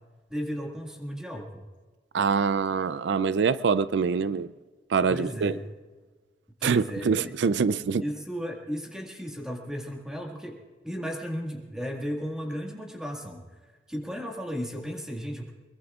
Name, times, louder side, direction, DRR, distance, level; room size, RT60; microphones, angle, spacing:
voice 1, 0.3-1.7 5.1-5.6 6.6-7.4 7.9-13.5 13.9-15.5, equal, 5° right, 0 dB, 1.9 m, -35 dB
voice 2, 2.1-4.5 4.9-5.5 6.6-8.0, right 5 dB, 85° right, 16 dB, 0.4 m, -24 dB
22.5 x 22.0 x 2.4 m, 1.4 s
head